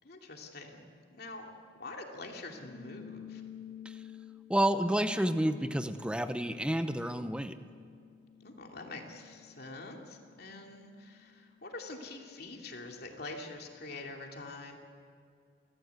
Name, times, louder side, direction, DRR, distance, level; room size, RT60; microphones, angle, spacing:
voice 1, 0.0-1.5 1.8-3.4 8.4-14.8, left 2 dB, 55° left, 1 dB, 2.7 m, -45 dB
sound 1, 2.5-13.4, left 9 dB, 40° left, 2.1 m, -52 dB
voice 2, 4.5-7.6, right 1 dB, 5° right, 10 dB, 0.8 m, -30 dB
29.5 x 14.5 x 8.3 m, 2.3 s
head